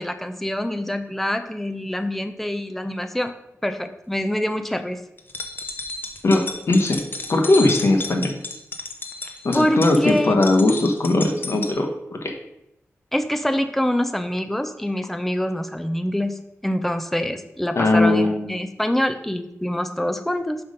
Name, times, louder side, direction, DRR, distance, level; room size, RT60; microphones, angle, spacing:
voice 1, 0.0-3.3 3.6-5.0 9.5-10.3 13.1-20.6, left 1 dB, 5° left, 7 dB, 0.6 m, -25 dB
sound 1, 5.2-11.7, left 3 dB, 45° left, 0.9 m, -32 dB
voice 2, 6.2-7.0 7.3-8.4 9.4-12.3 17.7-18.6, left 2 dB, 60° left, 3 dB, 1.2 m, -19 dB
5.9 x 5.6 x 5.0 m, 0.84 s
wide cardioid pair, 110°, 5 cm